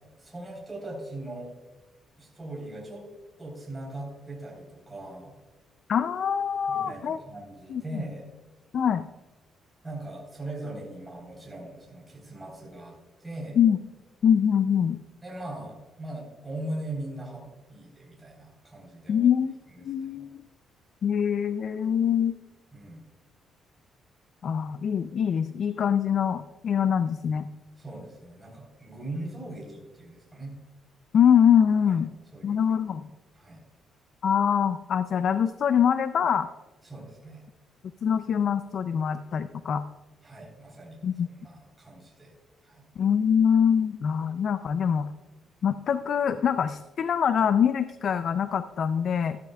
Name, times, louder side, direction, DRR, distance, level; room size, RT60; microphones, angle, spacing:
voice 1, 0.2-1.5 2.2-3.1 3.4-5.4 6.7-8.3 9.8-13.6 15.2-17.4 17.7-19.3 20.1-20.3 22.7-23.0 27.8-30.6 31.9-32.0 32.3-32.6 33.3-33.6 36.8-37.4 40.2-41.0 41.3-42.3 42.6-42.8, right 1 dB, 15° right, -3 dB, 3.8 m, -40 dB
voice 2, 5.9-7.2 7.7-8.0 8.7-9.1 13.6-13.8 14.2-15.0 19.1-19.6 19.8-20.4 21.0-22.3 24.4-27.5 31.1-32.1 32.4-33.0 34.2-36.5 38.0-39.8 41.0-41.3 43.0-45.1 45.6-49.4, left 8 dB, 55° left, 11 dB, 0.4 m, -24 dB
14.0 x 12.5 x 2.3 m, 1.2 s
cardioid pair, 130°, 0 cm